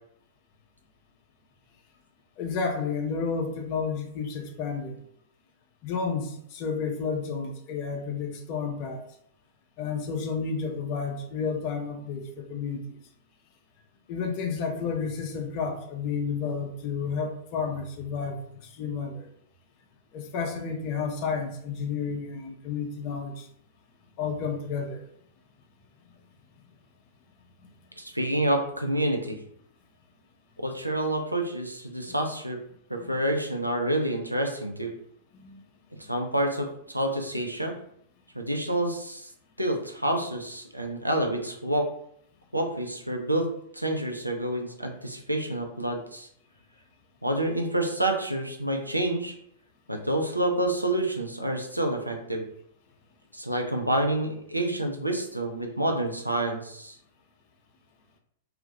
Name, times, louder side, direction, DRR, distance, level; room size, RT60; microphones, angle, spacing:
voice 1, 2.4-5.0 5.8-9.0 9.8-12.8 14.1-18.4 18.8-19.2 20.1-23.5 24.2-25.0 32.1-32.2 33.0-33.1 35.3-35.6, left 5 dB, 40° left, 3 dB, 0.5 m, -31 dB
voice 2, 28.0-29.4 30.6-32.6 32.9-34.9 36.0-37.8 38.3-39.3 39.6-41.9 42.5-46.3 47.2-49.3 49.9-52.4 53.3-57.0, right 1 dB, 90° right, 2 dB, 0.4 m, -28 dB
2.3 x 2.1 x 2.7 m, 0.69 s
figure-of-eight pair, 100°, 0 cm